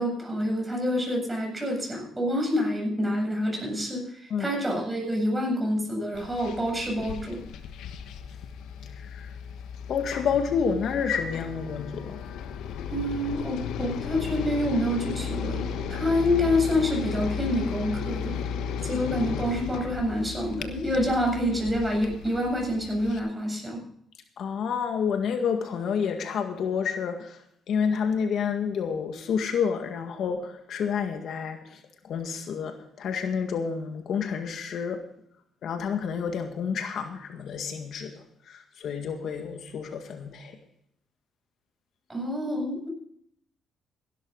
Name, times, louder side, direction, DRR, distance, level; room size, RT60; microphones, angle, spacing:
voice 1, 0.0-7.4 12.9-15.6 15.9-18.3 18.8-23.8 42.1-42.9, left 1 dB, 15° right, 1 dB, 7.7 m, -27 dB
sound 1, 6.1-23.2, left 7 dB, 85° left, 1.2 m, -35 dB
voice 2, 8.8-9.3 9.9-12.2 18.9-19.0 24.4-27.4 27.7-35.0 35.6-40.6, left 6 dB, 70° left, 6 dB, 1.9 m, -29 dB
16.5 x 12.0 x 4.0 m, 0.69 s
cardioid pair, 90°, 0 cm